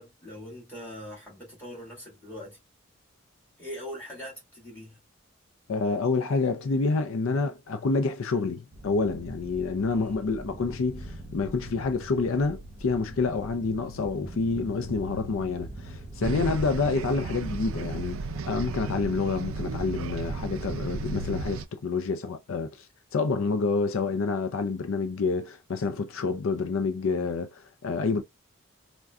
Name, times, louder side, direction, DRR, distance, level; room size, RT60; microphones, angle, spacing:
voice 1, 0.0-2.6 3.6-5.0 9.9-10.3 16.3-16.7, equal, 10° left, 1.8 m, -42 dB
voice 2, 5.7-22.9 23.1-28.2, left 4 dB, 80° left, 0.4 m, -28 dB
sound 1, 8.7-21.4, right 1 dB, 35° right, 0.9 m, -41 dB
sound 2, 16.2-21.7, right 5 dB, 80° right, 0.3 m, -35 dB
3.6 x 2.2 x 2.3 m
head